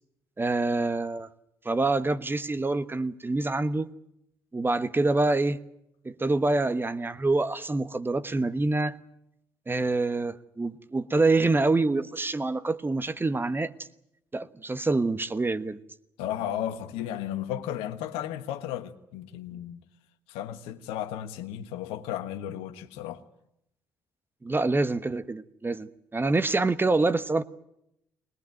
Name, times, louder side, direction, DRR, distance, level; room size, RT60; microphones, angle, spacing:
voice 1, 0.4-1.3 1.6-3.9 4.5-5.6 6.0-9.0 9.7-13.7 14.3-15.8 24.4-27.4, right 3 dB, 20° right, 1.3 m, -26 dB
voice 2, 16.2-19.8 20.3-23.2, left 11 dB, 70° left, 1.4 m, -34 dB
21.5 x 20.5 x 9.2 m
hypercardioid pair, 50°, 10 cm